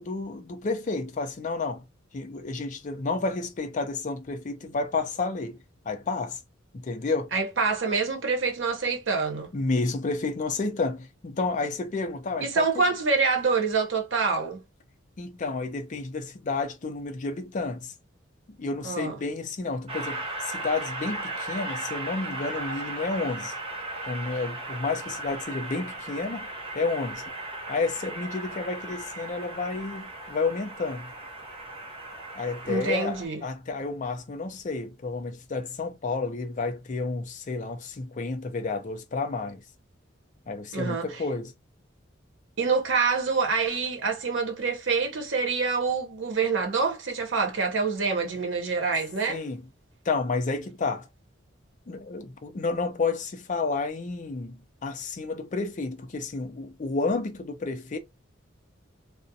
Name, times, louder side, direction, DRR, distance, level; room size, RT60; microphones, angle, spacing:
voice 1, 0.0-1.8 2.1-5.6 5.9-6.4 6.8-7.3 9.5-12.7 15.2-17.9 18.6-23.5 24.1-26.5 26.7-27.2 27.7-31.1 32.4-39.6 40.5-41.5 49.3-49.6 50.1-51.1 51.9-58.0, left 3 dB, 40° left, 0.5 m, -30 dB
voice 2, 7.3-9.5 12.4-14.6 18.8-19.2 32.6-33.4 40.7-41.2 42.6-49.4, right 4 dB, 70° right, 0.8 m, -26 dB
Train, 19.9-33.2, right 2 dB, 30° right, 0.6 m, -37 dB
2.4 x 2.0 x 2.7 m
head